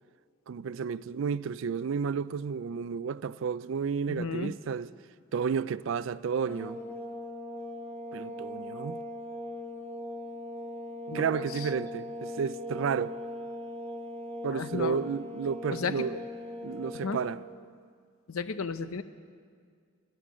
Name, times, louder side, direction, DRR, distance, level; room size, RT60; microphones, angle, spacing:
voice 1, 0.5-4.9 5.3-6.8 8.1-9.0 11.1-13.2 14.4-16.1 16.6-17.4, right 6 dB, 65° right, 0.3 m, -32 dB
voice 2, 4.1-4.5 11.1-11.7 14.4-15.0 15.7-16.2 16.8-17.2 18.3-19.0, left 5 dB, 85° left, 0.7 m, -34 dB
sound 1, 6.5-17.5, left 1 dB, 10° left, 1.0 m, -40 dB
17.0 x 12.0 x 6.2 m
head